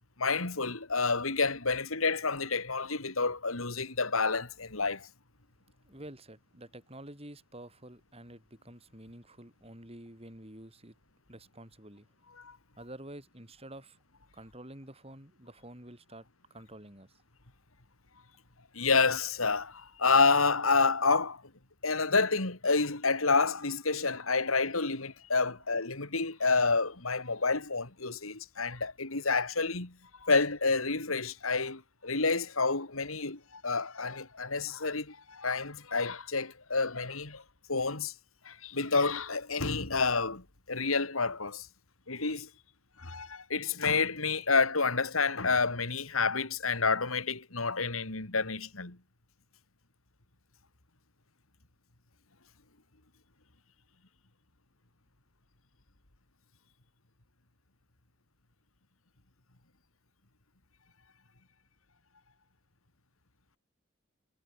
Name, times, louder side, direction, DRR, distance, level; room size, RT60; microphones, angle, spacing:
voice 1, 0.2-5.1 12.4-12.6 18.7-21.4 21.8-30.0 30.2-37.4 37.7-38.1 38.4-41.7 42.1-42.5 43.0-49.0, left 4 dB, 90° left, 3.1 m, -29 dB
voice 2, 5.8-11.0 11.3-12.1 12.8-14.0 14.3-17.2, right 1 dB, 30° right, 6.7 m, -49 dB
head